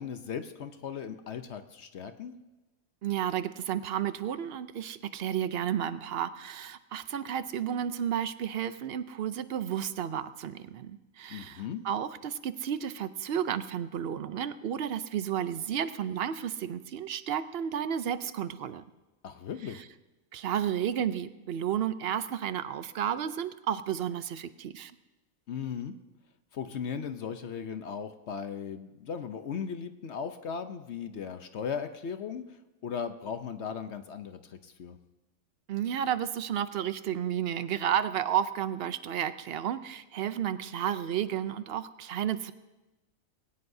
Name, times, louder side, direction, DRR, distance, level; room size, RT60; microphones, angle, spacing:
voice 1, 0.0-2.3 11.3-11.8 19.2-19.8 25.5-25.9 26.5-35.0, left 7 dB, 60° left, 9 dB, 0.9 m, -37 dB
voice 2, 3.0-18.8 20.3-24.9 35.7-42.5, right 9 dB, 60° right, 13 dB, 0.7 m, -32 dB
21.0 x 17.5 x 2.7 m, 1.1 s
omnidirectional pair, 1.4 m